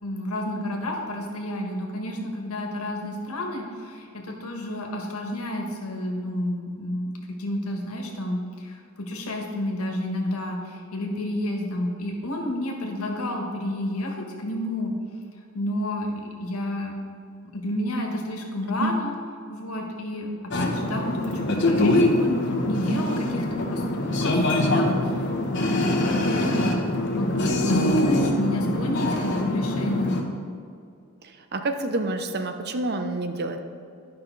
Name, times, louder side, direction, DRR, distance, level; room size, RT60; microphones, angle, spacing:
voice 1, 0.0-7.1 7.4-8.7 9.0-14.9 15.5-16.1 16.4-16.9 17.5-19.1 19.5-22.4 22.6-23.4 23.7-25.0 25.5-26.8 27.1-30.2, left 1 dB, 90° left, 1 dB, 1.4 m, -30 dB
sound 1, 20.5-30.2, left 1 dB, 55° left, 0.9 m, -24 dB
voice 2, 31.2-33.6, right 2 dB, 50° right, 7 dB, 0.6 m, -28 dB
11.0 x 5.6 x 4.0 m, 2.4 s
head